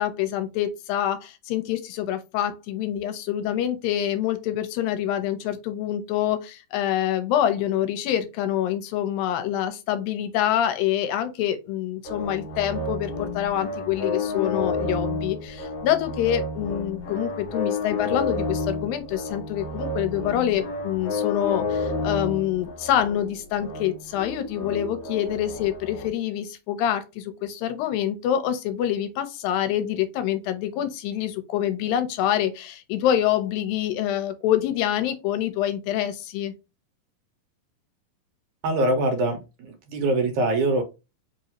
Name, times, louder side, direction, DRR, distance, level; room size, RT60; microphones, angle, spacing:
voice 1, 0.0-36.5, left 11 dB, 80° left, 2.5 m, -26 dB
sound 1, 12.0-26.1, left 3 dB, 65° left, 2.0 m, -30 dB
voice 2, 38.6-40.8, right 2 dB, 70° right, 2.1 m, -23 dB
5.4 x 2.7 x 2.9 m
omnidirectional pair, 4.1 m